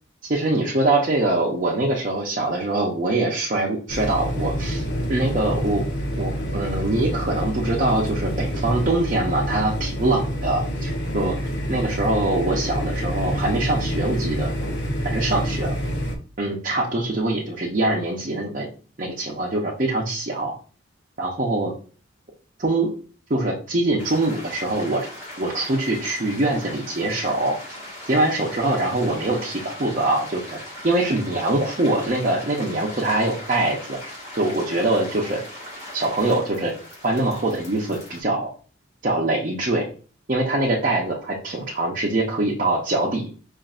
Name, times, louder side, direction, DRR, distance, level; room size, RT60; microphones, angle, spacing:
voice 1, 0.3-4.8 5.1-5.8 6.2-11.4 11.7-14.5 15.0-15.8 16.4-18.7 19.0-20.5 21.2-21.7 22.6-22.9 23.3-25.1 25.4-27.8 28.1-30.6 30.8-34.0 34.4-35.4 35.9-36.7 37.0-38.5 39.0-39.8 40.3-43.3, right 2 dB, 40° right, -4 dB, 0.7 m, -23 dB
sound 1, 3.9-16.1, equal, 70° left, 0.7 m, -27 dB
sound 2, 24.0-38.2, left 1 dB, 35° left, 1.5 m, -39 dB
5.2 x 2.6 x 2.4 m, 0.39 s
head